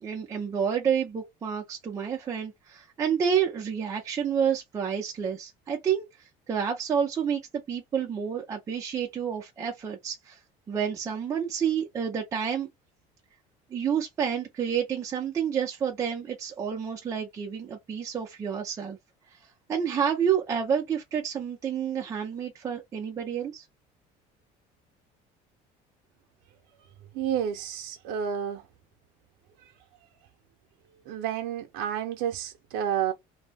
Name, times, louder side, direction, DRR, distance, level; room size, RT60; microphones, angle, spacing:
voice 1, 0.0-7.4 7.7-10.4 10.7-12.7 13.7-19.0 19.7-23.7, right 7 dB, 20° right, 0.5 m, -29 dB
voice 2, 27.1-28.7 31.1-33.1, right 9 dB, 70° right, 0.6 m, -30 dB
2.6 x 2.1 x 3.3 m
cardioid pair, 175°, 17 cm